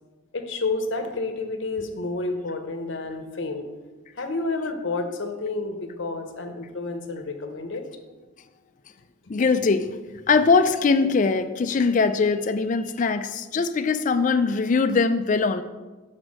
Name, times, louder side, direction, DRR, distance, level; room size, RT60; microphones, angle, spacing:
voice 1, 0.3-3.7 4.2-7.9 9.2-9.3, left 3 dB, 60° left, 6 dB, 0.8 m, -30 dB
voice 2, 9.3-9.9 10.3-15.6, left 4 dB, 35° left, 9 dB, 0.3 m, -21 dB
6.2 x 4.4 x 6.2 m, 1.2 s
head